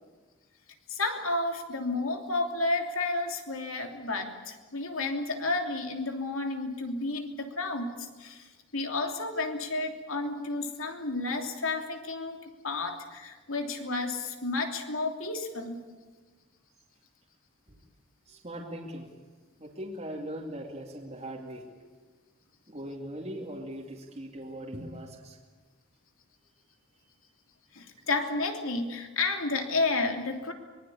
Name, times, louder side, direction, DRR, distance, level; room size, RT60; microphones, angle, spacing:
voice 1, 0.9-12.4 12.6-15.8 27.7-30.5, left 3 dB, 70° left, 4 dB, 3.0 m, -31 dB
voice 2, 18.3-19.1 19.6-21.7 22.7-25.4, equal, 30° right, -2 dB, 2.5 m, -40 dB
24.0 x 20.5 x 8.6 m, 1.3 s
head